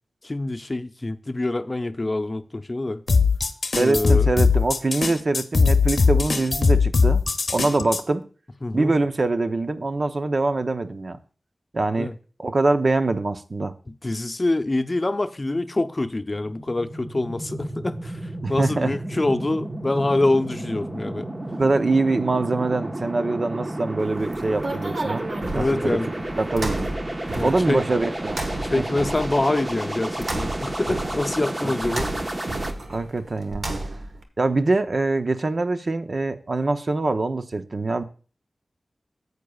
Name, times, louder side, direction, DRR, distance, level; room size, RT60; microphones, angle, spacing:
voice 1, 0.2-3.0 3.7-4.3 8.6-9.0 12.0-12.1 14.0-18.2 18.5-21.3 25.5-26.1 27.3-27.8 28.6-32.1, left 2 dB, 40° left, 0.6 m, -25 dB
sound 1, 3.1-8.0, left 4 dB, 85° left, 0.7 m, -20 dB
voice 2, 3.7-7.2 7.5-8.2 8.7-11.2 11.7-12.1 12.4-13.7 18.4-18.9 21.5-25.2 25.5-26.0 26.4-26.9 27.4-28.8 31.6-32.0 32.9-33.7 34.4-38.0, right 3 dB, 60° right, 0.7 m, -24 dB
sound 2, 16.2-32.7, right 1 dB, 40° right, 1.1 m, -32 dB
sound 3, 24.0-34.2, right 2 dB, 80° right, 1.2 m, -33 dB
13.5 x 8.2 x 2.3 m
cardioid pair, 40°, 0 cm